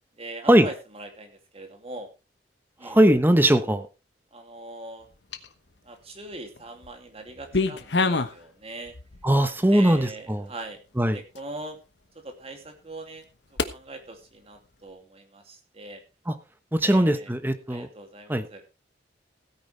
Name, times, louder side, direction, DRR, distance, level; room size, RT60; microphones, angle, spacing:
voice 1, 0.1-2.1 2.8-3.0 4.3-5.1 5.8-8.9 9.7-10.8 11.1-11.8 12.1-13.3 13.5-16.0 16.8-17.3 17.7-18.6, right 2 dB, 35° right, 5 dB, 2.7 m, -41 dB
voice 2, 2.8-3.9 9.2-10.5 11.0-11.2 16.3-16.4 16.7-17.9 18.3-18.5, right 1 dB, 10° right, 10 dB, 1.1 m, -20 dB
sound 1, 5.0-5.7 6.3-6.9 7.2-8.4 8.9-9.3 9.9-10.0 10.6-10.7 11.4-11.5 13.6-13.7, left 3 dB, 75° left, 1.2 m, -27 dB
16.5 x 9.8 x 3.3 m, 0.28 s
head